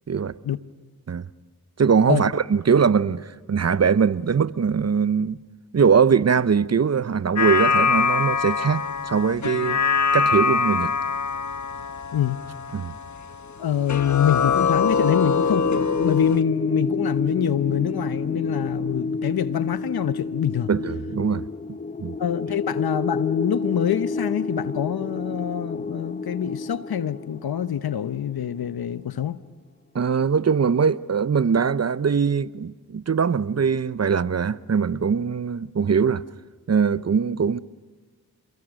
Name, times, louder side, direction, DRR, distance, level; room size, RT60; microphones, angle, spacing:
voice 1, 1.8-5.4 5.7-9.8 10.1-10.9 12.7-12.9 20.7-21.5 22.0-22.2 29.9-36.2 36.7-37.6, right 6 dB, 40° right, 0.9 m, -21 dB
sound 1, 7.4-13.6 13.9-16.4, left 5 dB, 45° left, 1.2 m, -23 dB
voice 2, 13.6-20.7 22.2-29.4, left 10 dB, 65° left, 1.0 m, -25 dB
sound 2, 13.6-28.6, left 3 dB, 20° left, 0.9 m, -30 dB
27.5 x 22.0 x 6.5 m
cardioid pair, 45°, 39 cm